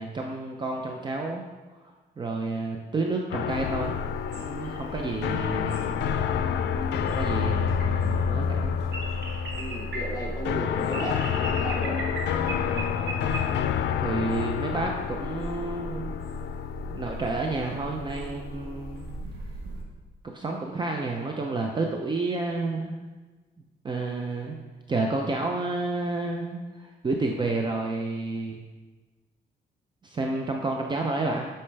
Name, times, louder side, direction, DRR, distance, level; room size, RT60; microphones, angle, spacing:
voice 1, 0.0-1.4 1.7-4.0 4.3-5.8 7.0-8.8 14.0-16.1 16.9-19.1 20.2-23.0 23.8-24.6 24.9-28.6 30.0-31.4, right 3 dB, 25° right, 1 dB, 0.5 m, -30 dB
sound 1, 3.3-19.2, left 8 dB, 85° left, 0.4 m, -29 dB
sound 2, 3.5-19.8, right 1 dB, 70° right, 1.5 m, -37 dB
voice 2, 9.6-12.0, equal, 20° left, -4 dB, 2.3 m, -34 dB
8.6 x 5.6 x 3.3 m, 1.3 s
cardioid pair, 135°, 18 cm